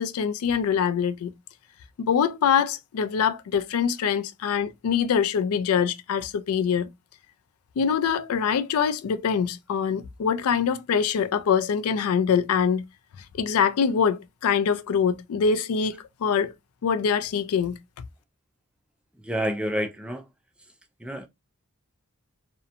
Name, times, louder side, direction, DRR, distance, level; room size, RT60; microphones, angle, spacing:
voice 1, 0.0-1.3 2.0-6.9 7.8-12.8 13.3-16.5 16.8-17.8, left 7 dB, 90° left, 0.3 m, -24 dB
voice 2, 19.2-20.2 21.0-21.3, equal, 5° right, 0.3 m, -28 dB
2.8 x 2.1 x 2.4 m
head